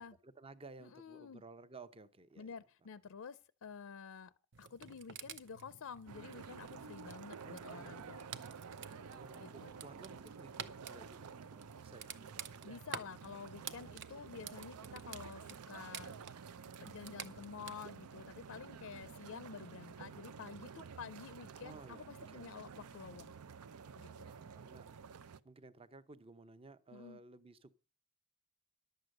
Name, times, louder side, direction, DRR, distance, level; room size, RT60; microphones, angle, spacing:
voice 1, 0.0-2.6 7.4-8.3 9.1-12.7 21.6-22.5 24.0-27.7, right 3 dB, 25° right, 0.6 m, -56 dB
voice 2, 0.8-1.4 2.4-4.3 4.6-8.2 9.4-9.7 12.6-16.2 16.8-23.3 23.9-24.3 26.9-27.2, left 6 dB, 70° left, 0.5 m, -50 dB
sound 1, 4.5-17.7, right 7 dB, 60° right, 0.8 m, -51 dB
sound 2, 6.1-25.4, right 6 dB, 85° right, 0.5 m, -51 dB
11.5 x 7.8 x 6.5 m
head